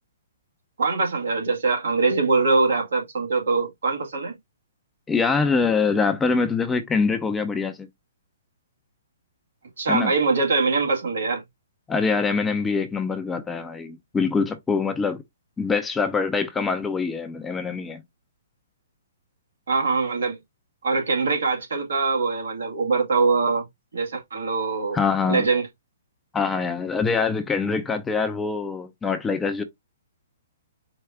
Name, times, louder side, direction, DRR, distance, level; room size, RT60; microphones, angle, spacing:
voice 1, 0.8-4.3 9.8-11.4 19.7-20.4 20.8-23.7 23.9-25.0 25.3-25.7, right 4 dB, 75° right, 1.8 m, -23 dB
voice 2, 5.1-7.9 9.9-10.1 11.9-15.2 15.6-18.0 24.9-25.5 26.3-29.6, left 4 dB, 10° left, 0.6 m, -24 dB
4.7 x 2.3 x 3.5 m
figure-of-eight pair, 125°, 0 cm